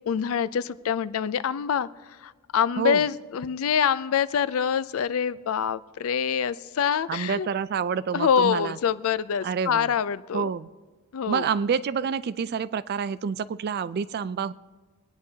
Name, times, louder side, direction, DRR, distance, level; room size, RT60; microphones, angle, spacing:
voice 1, 0.1-1.9 2.2-7.5 8.1-10.5 11.1-11.5, left 7 dB, 70° left, 16 dB, 0.4 m, -25 dB
voice 2, 7.1-8.8 9.4-9.9 10.3-10.7 11.3-14.5, right 6 dB, 45° right, 17 dB, 0.3 m, -28 dB
24.0 x 9.5 x 2.8 m, 1.4 s
head